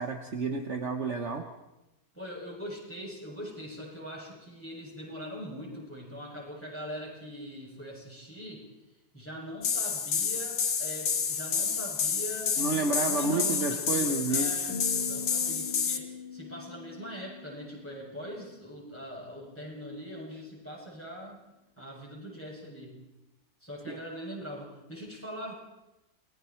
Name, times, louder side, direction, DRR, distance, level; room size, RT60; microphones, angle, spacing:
voice 1, 0.0-1.5 12.6-14.6 23.9-24.0, right 3 dB, 50° right, 5 dB, 1.5 m, -30 dB
voice 2, 2.1-8.7 9.1-21.4 21.8-23.0 23.6-25.5, equal, 5° left, -4 dB, 7.6 m, -42 dB
sound 1, 9.6-16.0, left 6 dB, 80° left, 1.9 m, -29 dB
sound 2, 14.7-19.0, left 4 dB, 40° left, 2.8 m, -42 dB
29.0 x 21.0 x 4.5 m, 0.97 s
omnidirectional pair, 1.7 m